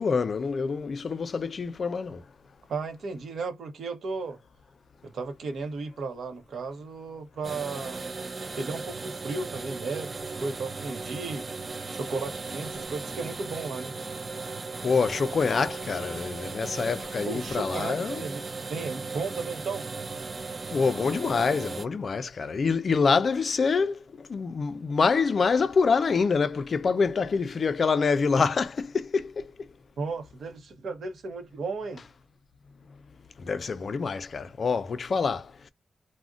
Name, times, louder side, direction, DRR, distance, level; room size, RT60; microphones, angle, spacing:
voice 1, 0.0-2.2 14.8-18.2 20.7-29.5 33.4-35.7, left 5 dB, 50° left, 0.3 m, -26 dB
voice 2, 2.7-4.4 5.0-8.0 8.5-11.5 11.9-13.9 17.2-18.4 18.7-19.8 30.0-32.0, right 4 dB, 75° right, 0.7 m, -34 dB
sound 1, 7.4-21.9, right 4 dB, 35° right, 0.3 m, -37 dB
2.4 x 2.1 x 3.6 m
wide cardioid pair, 130°, 0 cm